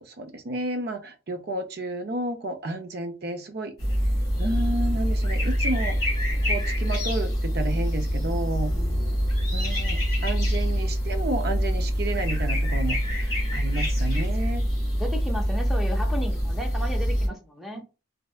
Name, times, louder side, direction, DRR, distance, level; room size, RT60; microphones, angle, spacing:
voice 1, 0.0-3.7 4.4-6.0 6.4-8.7 9.5-14.6, right 2 dB, 50° right, 0.5 m, -31 dB
sound 1, 3.8-17.3, equal, 20° left, 1.7 m, -25 dB
voice 2, 14.8-17.8, equal, ahead, 0.5 m, -34 dB
3.2 x 2.7 x 2.4 m
head